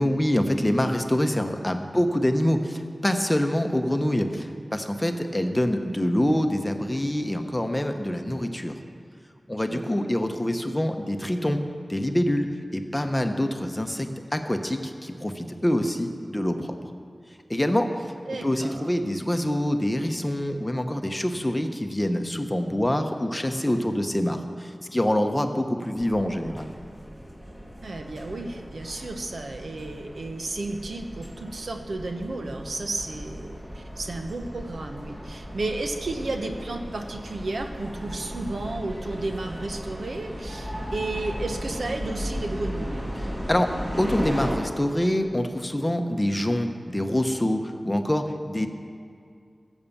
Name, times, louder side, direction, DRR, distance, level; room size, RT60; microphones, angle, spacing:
voice 1, 0.0-8.7 9.5-11.6 11.9-12.5 12.7-16.9 17.5-18.0 18.4-26.7 43.2-43.7 44.0-48.7, left 1 dB, 15° left, 6 dB, 1.0 m, -25 dB
voice 2, 9.7-10.0 18.3-18.9 27.8-43.1, right 2 dB, 80° right, 4 dB, 1.1 m, -33 dB
sound 1, 26.0-44.6, equal, 15° right, 2.0 m, -36 dB
16.5 x 7.2 x 7.1 m, 2.4 s
wide cardioid pair, 80°, 0 cm